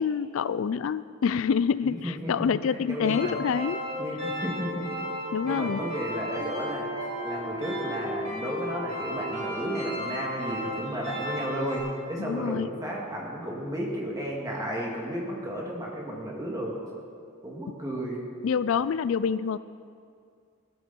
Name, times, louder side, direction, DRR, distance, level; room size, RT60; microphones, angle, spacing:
voice 1, 0.0-3.8 5.3-5.9 12.2-12.7 18.4-19.6, left 6 dB, 70° left, 16 dB, 0.3 m, -27 dB
voice 2, 1.8-3.4 4.0-4.9 5.4-6.9 7.2-16.8 17.4-18.2, equal, 15° right, -3 dB, 2.4 m, -33 dB
sound 1, 3.0-11.8, equal, 35° right, 4.6 m, -34 dB
17.0 x 13.5 x 4.5 m, 2.3 s
head